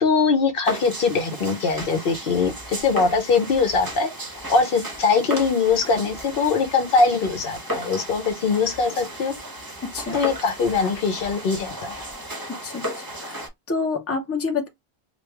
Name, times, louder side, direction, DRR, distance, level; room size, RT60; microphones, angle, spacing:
voice 1, 0.0-4.1 4.5-9.3 10.1-12.0, left 4 dB, 65° left, 0.9 m, -22 dB
sound 1, 0.6-13.5, equal, 20° right, 0.8 m, -35 dB
voice 2, 9.9-10.2 12.6-14.7, left 4 dB, 15° left, 0.6 m, -28 dB
3.1 x 2.3 x 3.3 m
omnidirectional pair, 1.0 m